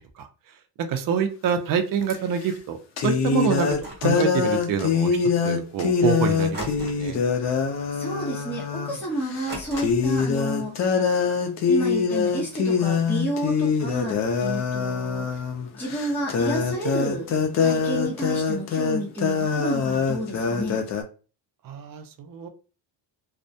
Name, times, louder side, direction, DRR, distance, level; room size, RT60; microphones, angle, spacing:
voice 1, 0.0-2.8 3.0-3.7 4.0-7.2 21.6-22.5, right 7 dB, 50° right, 7 dB, 0.5 m, -27 dB
sound 1, 2.1-2.2 3.0-9.0 9.3-9.5 9.8-21.0, left 6 dB, 40° left, 0.4 m, -24 dB
sound 2, 3.7-4.2 6.5-7.2 7.5-7.8 8.2-8.3 9.5-10.2, equal, 20° right, 0.9 m, -38 dB
voice 2, 7.9-11.0 11.7-15.4 15.7-17.2 17.6-20.8, right 1 dB, 5° left, -6 dB, 0.8 m, -30 dB
2.3 x 2.1 x 2.6 m, 0.35 s
cardioid pair, 135°, 46 cm